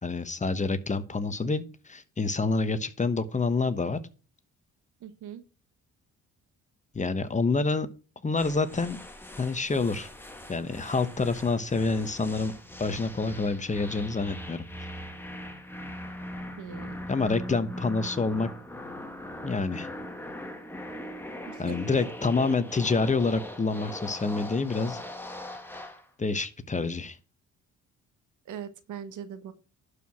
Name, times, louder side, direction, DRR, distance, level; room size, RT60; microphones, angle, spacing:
voice 1, 0.0-4.0 6.9-7.9 8.2-9.0 9.4-10.1 10.5-12.5 12.8-14.6 17.1-18.5 19.4-19.9 21.6-25.0 26.2-27.2, left 3 dB, 25° left, 12 dB, 1.1 m, -27 dB
voice 2, 5.0-5.4 16.6-16.9 21.5-22.0 28.4-29.5, right 8 dB, 75° right, 11 dB, 1.4 m, -41 dB
sound 1, 8.4-26.1, left 1 dB, 5° left, 1.8 m, -40 dB
11.5 x 4.9 x 5.8 m, 0.34 s
cardioid pair, 90°, 30 cm